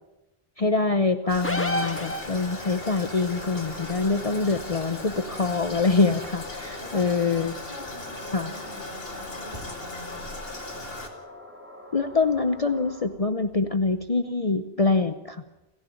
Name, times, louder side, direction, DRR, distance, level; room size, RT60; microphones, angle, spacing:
voice 1, 0.6-7.5 8.3-8.5 11.9-15.4, left 3 dB, 40° left, 10 dB, 0.9 m, -25 dB
sound 1, 1.2-13.1, left 1 dB, 10° right, 3.7 m, -45 dB
Toilet flush, 1.3-11.1, left 2 dB, 70° left, 2.8 m, -38 dB
sound 2, 1.4-2.8, equal, 15° left, 1.5 m, -29 dB
voice 2, 6.8-7.1 7.6-10.2, equal, 35° right, 3 dB, 4.0 m, -44 dB
29.5 x 11.0 x 9.4 m, 1.0 s
omnidirectional pair, 1.0 m